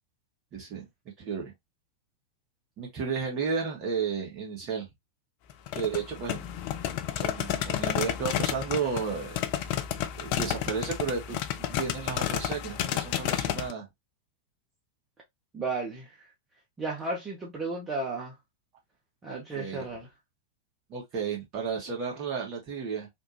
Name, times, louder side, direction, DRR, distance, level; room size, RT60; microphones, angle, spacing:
voice 1, 0.5-0.9 1.2-1.5 2.8-4.9 5.7-6.5 7.2-9.4 10.2-13.9 19.5-19.8 20.9-23.1, right 5 dB, 40° right, 1.5 m, -33 dB
sound 1, 5.5-13.7, left 11 dB, 45° left, 0.4 m, -31 dB
voice 2, 15.5-16.2 16.8-18.4 19.2-20.1, right 3 dB, 20° right, 1.1 m, -34 dB
3.4 x 2.3 x 2.9 m
figure-of-eight pair, 90°, 0 cm